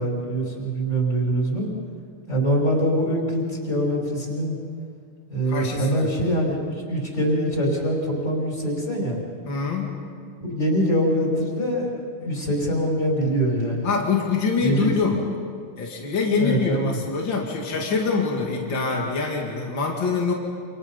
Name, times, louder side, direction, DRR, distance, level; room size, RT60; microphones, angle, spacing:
voice 1, 0.0-1.7 2.3-4.6 5.3-9.2 10.4-13.9 14.6-14.9 16.4-17.0, equal, 35° left, -3 dB, 6.0 m, -24 dB
voice 2, 5.5-6.3 9.5-9.9 13.8-15.2 15.8-20.3, left 4 dB, 55° left, -1 dB, 3.3 m, -25 dB
29.0 x 28.0 x 5.6 m, 2.2 s
omnidirectional pair, 2.4 m